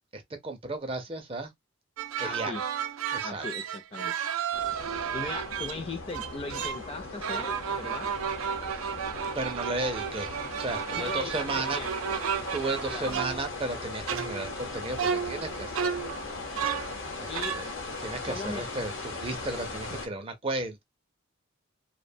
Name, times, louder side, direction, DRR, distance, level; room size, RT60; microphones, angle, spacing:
voice 1, 0.1-1.5 2.2-2.6 3.1-3.4 8.8-8.9 9.3-10.3 10.6-11.8 12.5-15.9 17.2-17.7 18.0-20.8, right 2 dB, 25° right, 0.5 m, -34 dB
sound 1, 2.0-5.8 6.1-6.9 7.2-13.8 14.1-14.7 15.0-17.0 17.3-17.7, right 7 dB, 90° right, 0.4 m, -33 dB
voice 2, 2.2-2.6 3.2-4.1 5.1-8.1 10.9-12.2 12.9-13.2 17.3-17.6 18.3-18.7, left 3 dB, 30° left, 0.5 m, -39 dB
sound 2, 4.5-20.1, left 3 dB, 70° left, 0.8 m, -39 dB
2.4 x 2.1 x 2.6 m
head